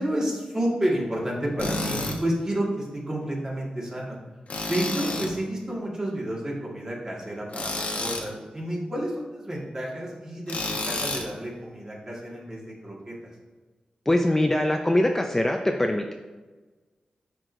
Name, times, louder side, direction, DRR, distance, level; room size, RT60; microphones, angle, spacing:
voice 1, 0.0-4.2 4.7-13.2, right 1 dB, 25° right, -3 dB, 1.8 m, -30 dB
Tools, 1.6-2.2 4.5-5.4 7.5-8.3 10.5-11.3, left 2 dB, 65° left, 0.9 m, -30 dB
voice 2, 14.1-16.1, left 1 dB, 15° left, 3 dB, 0.4 m, -23 dB
10.0 x 4.6 x 2.6 m, 1.2 s
wide cardioid pair, 105°, 3 cm